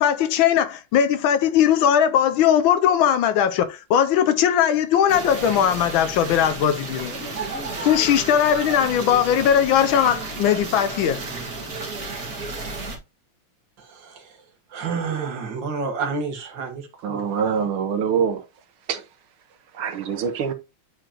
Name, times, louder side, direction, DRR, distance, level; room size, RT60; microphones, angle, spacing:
voice 1, 0.0-7.1 7.8-11.2, left 9 dB, 75° left, 1.3 m, -19 dB
sound 1, 5.1-13.0, right 3 dB, 45° right, 2.2 m, -32 dB
voice 2, 13.8-17.5, right 5 dB, 60° right, 2.0 m, -30 dB
voice 3, 17.0-18.4 18.9-19.0 19.8-20.5, right 7 dB, 85° right, 1.8 m, -24 dB
8.8 x 4.8 x 2.9 m
omnidirectional pair, 2.3 m